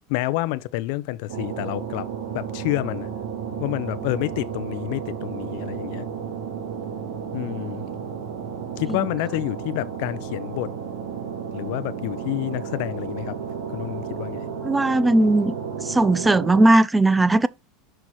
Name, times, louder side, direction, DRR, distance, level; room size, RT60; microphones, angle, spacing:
voice 1, 0.1-2.1 2.3-3.1 3.5-6.1 7.3-7.9 8.8-10.7 11.5-13.3 13.7-14.4, left 17 dB, 65° left, 0.6 m, -28 dB
sound 1, 1.3-16.7, right 7 dB, 85° right, 2.2 m, -33 dB
voice 2, 14.6-15.5 15.8-17.5, right 2 dB, 10° right, 0.4 m, -18 dB
6.3 x 4.5 x 4.2 m
supercardioid pair, 130°, 0 cm